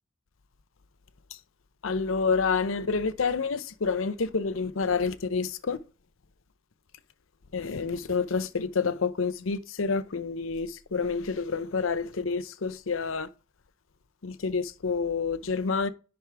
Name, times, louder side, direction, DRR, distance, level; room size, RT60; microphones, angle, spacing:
voice 1, 1.8-5.8 7.5-13.3 14.2-15.9, left 4 dB, 90° left, 0.7 m, -28 dB
10.5 x 4.7 x 3.5 m
head